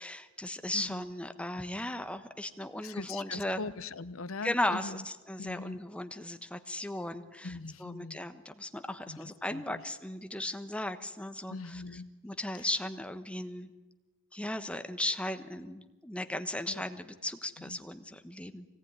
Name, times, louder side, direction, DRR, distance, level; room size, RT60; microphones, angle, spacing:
voice 1, 0.0-3.6 4.4-11.8 12.2-13.7 14.3-18.7, left 1 dB, 5° left, 8 dB, 1.2 m, -36 dB
voice 2, 0.7-1.1 2.8-5.0 5.4-5.8 7.4-8.2 9.1-9.8 11.5-12.1 12.6-12.7 16.7-16.8 17.6-17.8, left 3 dB, 85° left, 15 dB, 0.8 m, -42 dB
24.0 x 18.5 x 9.6 m, 1.1 s
head